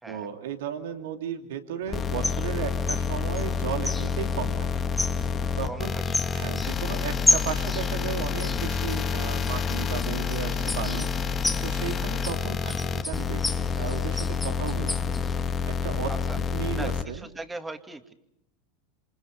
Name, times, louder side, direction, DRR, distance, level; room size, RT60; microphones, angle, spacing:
voice 1, 0.0-4.7 5.6-5.9 6.3-11.1 11.6-15.1 15.6-16.1 16.5-17.3, right 8 dB, 75° right, 5 dB, 2.7 m, -35 dB
sound 1, 1.9-17.0, left 6 dB, 30° left, 1.4 m, -28 dB
sound 2, 1.9-15.4, left 2 dB, 10° left, 1.5 m, -33 dB
voice 2, 5.7-6.4 16.1-16.4 16.7-18.1, right 2 dB, 10° right, 7 dB, 2.3 m, -40 dB
27.5 x 27.0 x 5.3 m, 0.77 s
hypercardioid pair, 100°, 0 cm